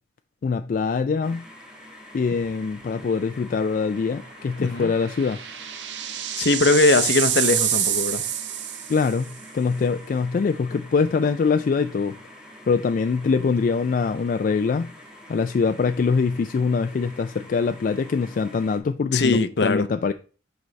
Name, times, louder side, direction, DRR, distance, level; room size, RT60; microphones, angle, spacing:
voice 1, 0.4-1.4 2.1-5.4 8.9-12.2 12.7-14.9 15.3-20.1, left 5 dB, 50° left, 0.3 m, -23 dB
sound 1, 1.2-18.8, left 1 dB, 5° right, 1.5 m, -46 dB
sound 2, 2.5-2.8 3.1-3.2 4.6-9.3, right 10 dB, 80° right, 0.7 m, -27 dB
voice 2, 4.6-4.9 6.4-8.2 19.1-19.9, left 3 dB, 70° left, 0.7 m, -20 dB
11.0 x 4.0 x 3.2 m
head